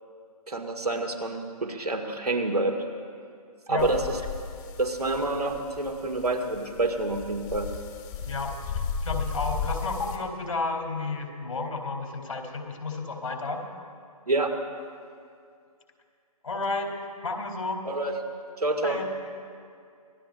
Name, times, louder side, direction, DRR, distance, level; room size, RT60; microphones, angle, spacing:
voice 1, 0.5-2.8 3.7-4.2 4.8-7.7 14.3-14.5 17.9-18.1 18.6-19.0, right 2 dB, 75° right, 4 dB, 2.1 m, -27 dB
sound 1, 3.8-10.2, left 6 dB, 30° left, 1.8 m, -35 dB
voice 2, 8.3-13.6 16.4-16.9 17.2-17.8 18.8-19.1, left 3 dB, 65° left, 2 dB, 3.9 m, -32 dB
25.5 x 19.0 x 2.6 m, 2.3 s
figure-of-eight pair, 135°, 20 cm